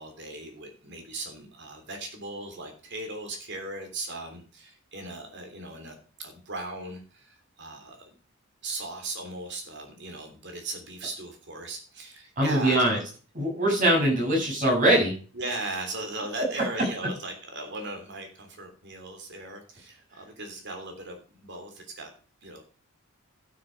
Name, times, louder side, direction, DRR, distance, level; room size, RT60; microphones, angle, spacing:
voice 1, 0.0-8.1 8.6-13.0 15.3-22.1 22.4-22.6, right 2 dB, 55° right, 5 dB, 3.1 m, -38 dB
voice 2, 12.4-13.0 13.3-15.1, right 1 dB, 35° right, -2 dB, 6.4 m, -22 dB
12.0 x 6.8 x 5.3 m, 0.38 s
head